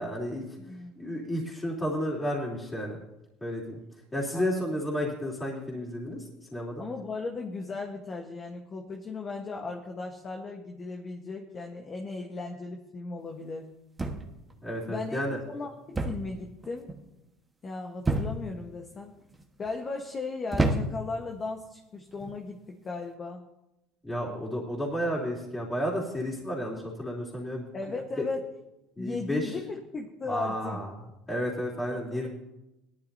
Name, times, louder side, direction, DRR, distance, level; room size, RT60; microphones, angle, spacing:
voice 1, 0.0-0.5 1.0-3.0 3.4-3.8 4.1-6.2 6.5-6.8 14.6-15.4 24.0-27.6 28.2-28.3 29.0-29.6 30.3-30.9 31.3-32.3, equal, 15° left, -6 dB, 3.2 m, -32 dB
voice 2, 0.6-0.9 4.3-4.6 6.8-13.7 14.9-15.2 15.5-16.9 17.6-19.1 19.6-23.4 27.7-28.5 29.0-30.8 31.9-32.3, left 3 dB, 30° left, 2 dB, 1.2 m, -36 dB
sound 1, 14.0-14.5 15.9-16.3 16.6-17.0 18.0-18.6 19.3-19.7 20.5-21.2 22.1-22.4, right 2 dB, 15° right, 1.3 m, -29 dB
17.5 x 11.5 x 2.7 m, 0.94 s
supercardioid pair, 110°, 0 cm